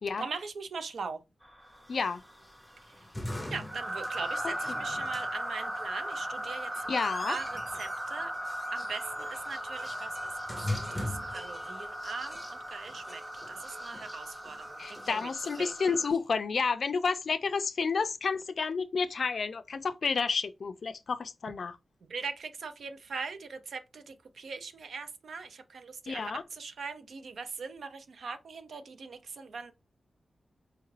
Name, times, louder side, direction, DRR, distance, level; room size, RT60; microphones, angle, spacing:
voice 1, 0.2-1.2 3.0-3.1 3.5-8.3 8.7-15.3 15.6-16.0 22.0-29.7, right 4 dB, 80° right, 0.5 m, -41 dB
sound 1, 1.4-2.8 3.3-16.1, right 1 dB, 15° right, 1.0 m, -38 dB
voice 2, 1.9-2.2 6.9-7.4 14.8-21.8 26.1-26.4, left 5 dB, 60° left, 0.3 m, -30 dB
sound 2, 1.9-16.2, left 1 dB, 5° left, 0.6 m, -43 dB
4.6 x 2.4 x 3.2 m
wide cardioid pair, 135°, 0 cm